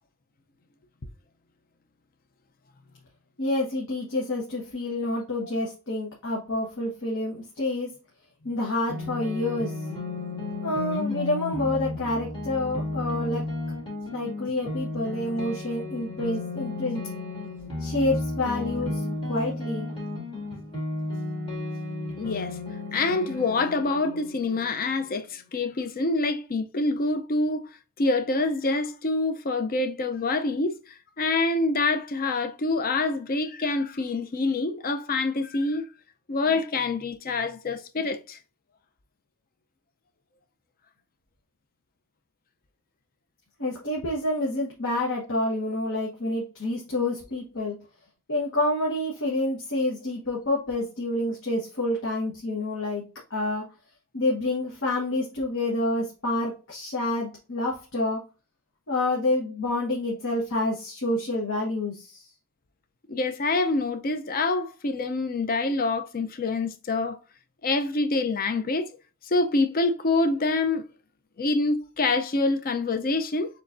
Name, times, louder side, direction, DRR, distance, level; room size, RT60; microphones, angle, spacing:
voice 1, 3.4-7.9 8.4-9.7 10.6-13.4 14.1-17.0 17.8-19.0 19.3-19.9 43.6-47.8 48.3-53.0 53.3-53.6 54.1-58.2 58.9-62.2, left 2 dB, 60° left, 1.1 m, -28 dB
sound 1, 8.9-25.1, left 2 dB, 25° left, 2.1 m, -33 dB
voice 2, 22.2-22.6 22.9-27.7 28.0-30.8 31.2-35.9 36.3-38.4 63.1-67.2 67.6-68.9 69.3-70.9 71.4-73.5, left 3 dB, 40° left, 0.6 m, -26 dB
6.7 x 3.1 x 2.5 m
head